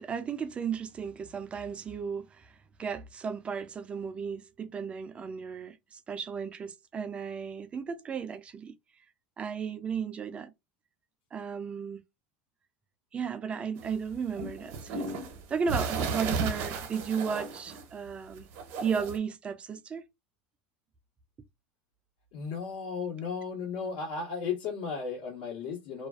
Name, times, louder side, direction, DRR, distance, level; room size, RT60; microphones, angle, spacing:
voice 1, 0.0-2.5 2.8-8.7 9.4-10.5 11.3-12.0 13.1-15.2 15.5-18.5 18.8-20.0, right 6 dB, 25° right, 0.3 m, -34 dB
sound 1, 13.8-18.1 18.4-19.2, right 4 dB, 60° right, 0.7 m, -34 dB
voice 2, 22.3-26.1, left 5 dB, 75° left, 1.1 m, -35 dB
2.4 x 2.3 x 2.3 m
supercardioid pair, 130°, 5 cm